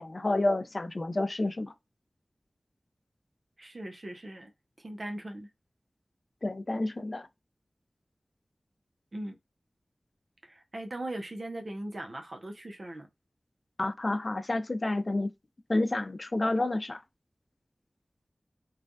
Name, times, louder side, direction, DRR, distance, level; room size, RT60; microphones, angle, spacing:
voice 1, 0.0-1.7 6.4-7.3 13.8-15.3 15.7-17.0, left 2 dB, 50° left, 0.3 m, -29 dB
voice 2, 3.6-4.5 4.8-5.5 9.1-9.4 10.4-13.1, right 1 dB, 55° right, 0.7 m, -39 dB
3.1 x 2.3 x 2.5 m
wide cardioid pair, 55°, 0 cm